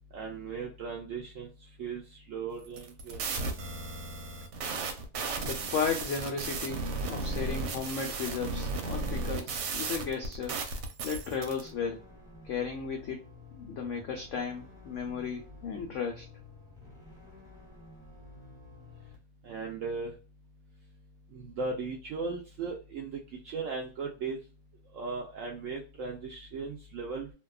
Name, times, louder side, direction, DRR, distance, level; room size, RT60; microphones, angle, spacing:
voice 1, 0.1-1.5 1.8-3.4 19.4-20.1 21.3-24.4 24.9-27.3, right 4 dB, 75° right, 0 dB, 0.7 m, -37 dB
sound 1, 2.7-11.6, right 3 dB, 90° right, 1.2 m, -35 dB
voice 2, 5.4-10.6 11.0-12.0 12.4-13.2 13.5-16.3, left 6 dB, 85° left, 3 dB, 0.6 m, -35 dB
sound 2, 11.2-19.1, left 2 dB, 5° right, 0.5 m, -52 dB
2.7 x 2.2 x 2.3 m, 0.33 s
omnidirectional pair, 1.8 m